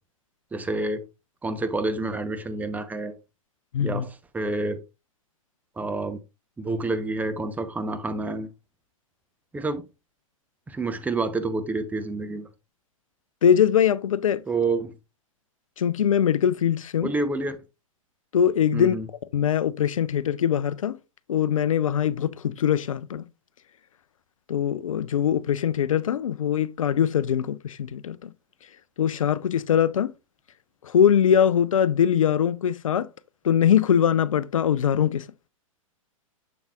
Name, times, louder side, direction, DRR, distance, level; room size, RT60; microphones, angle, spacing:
voice 1, 0.5-1.0 1.4-3.1 3.8-4.8 5.8-6.2 6.6-8.5 9.5-9.8 10.7-12.5 14.5-14.9 17.0-17.6 18.7-19.1, right 3 dB, 10° right, 0.7 m, -28 dB
voice 2, 3.7-4.0 13.4-14.4 15.8-17.1 18.3-19.0 19.3-21.0 21.3-23.2 24.5-28.3 29.0-30.1 30.8-33.1 33.4-35.2, left 9 dB, 70° left, 0.5 m, -22 dB
7.1 x 7.0 x 2.3 m
figure-of-eight pair, 110°, 18 cm